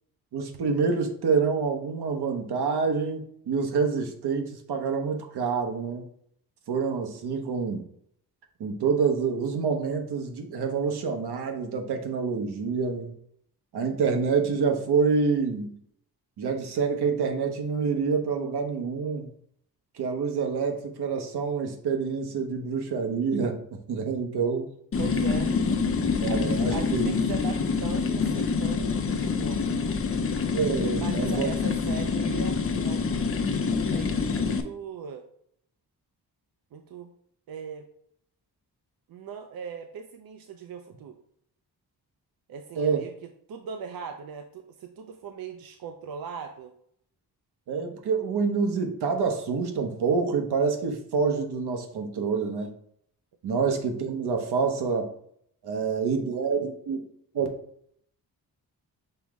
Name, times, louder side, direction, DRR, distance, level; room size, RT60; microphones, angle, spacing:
voice 1, 0.3-6.1 6.7-7.8 8.6-13.1 13.7-15.7 16.4-19.3 19.9-23.6 23.9-24.7 26.2-27.1 30.5-31.5 31.9-32.0 42.8-43.0 47.7-52.7 53.4-55.1 55.6-57.0 57.3-57.5, right 5 dB, 80° right, 3 dB, 0.9 m, -27 dB
sound 1, 24.9-34.6, left 5 dB, 35° left, 0.5 m, -26 dB
voice 2, 25.0-25.5 26.3-30.0 31.0-33.3 33.7-35.3 36.7-37.1 37.5-37.9 39.1-41.2 42.5-46.7 53.5-53.6, right 7 dB, 65° right, 5 dB, 0.5 m, -40 dB
5.6 x 2.1 x 4.6 m, 0.67 s
wide cardioid pair, 115°, 39 cm